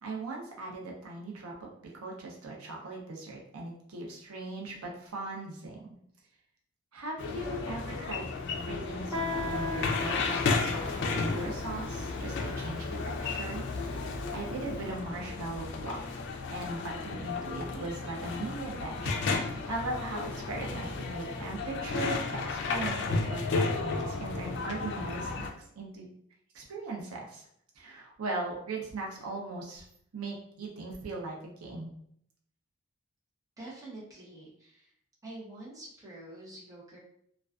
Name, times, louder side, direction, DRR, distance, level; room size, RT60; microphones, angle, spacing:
voice 1, 0.0-5.8 6.9-8.3 8.6-14.0 14.3-16.0 16.5-19.2 19.7-26.1 26.5-27.4 27.8-29.8 30.1-31.9, right 2 dB, 85° right, -2 dB, 0.6 m, -39 dB
sound 1, 7.2-25.5, left 4 dB, 55° left, 0.3 m, -33 dB
Guitar, 9.1-14.6, left 2 dB, 20° left, 1.0 m, -40 dB
voice 2, 33.6-34.9 35.2-37.0, right 1 dB, 15° right, -5 dB, 0.7 m, -46 dB
2.4 x 2.3 x 2.3 m, 0.68 s
head